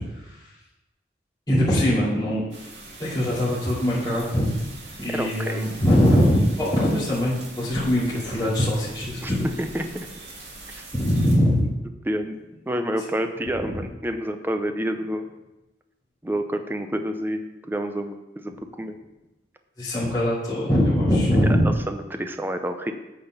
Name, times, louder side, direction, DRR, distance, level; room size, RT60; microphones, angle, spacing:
voice 1, 1.5-2.4 3.0-4.7 5.0-9.5 10.9-11.7 13.6-13.7 19.8-21.7, equal, 20° left, -10 dB, 2.4 m, -22 dB
sound 1, 2.5-11.4, right 2 dB, 75° right, 1.9 m, -41 dB
voice 2, 5.1-5.6 9.2-9.3 9.6-9.9 10.8-10.9 12.0-15.3 16.2-18.5 18.8-19.0 21.6-22.9, equal, 10° right, 6 dB, 0.5 m, -28 dB
8.6 x 4.2 x 5.5 m, 1.0 s
head